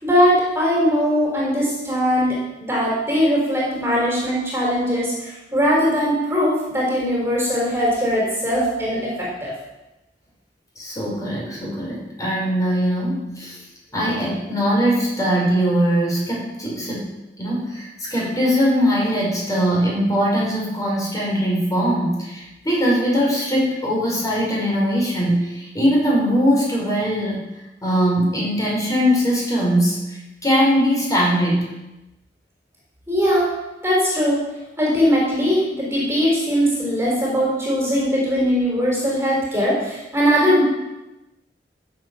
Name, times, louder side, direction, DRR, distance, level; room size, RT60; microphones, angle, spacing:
voice 1, 0.0-9.5 33.1-33.5 33.8-34.4 34.8-40.6, equal, 15° right, -4 dB, 4.7 m, -20 dB
voice 2, 10.8-13.6 13.9-27.4 27.8-31.6, equal, 20° left, -4 dB, 5.3 m, -21 dB
14.5 x 8.0 x 7.1 m, 0.99 s
head